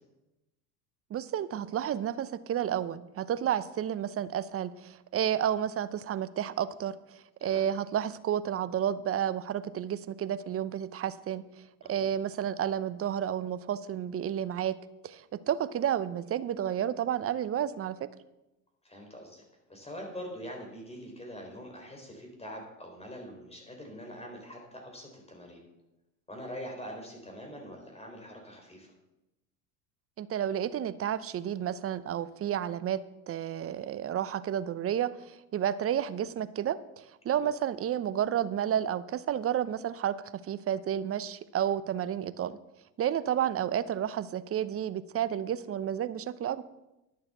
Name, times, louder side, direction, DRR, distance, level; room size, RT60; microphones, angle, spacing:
voice 1, 1.1-7.0 7.4-11.4 11.9-14.7 15.0-18.0 30.2-40.1 40.5-42.6 43.0-46.6, right 10 dB, 35° right, 15 dB, 0.7 m, -31 dB
voice 2, 18.8-25.6 26.3-28.9 37.4-37.5, equal, 15° left, 1 dB, 3.6 m, -44 dB
11.0 x 6.9 x 6.6 m, 0.96 s
hypercardioid pair, 90°, 41 cm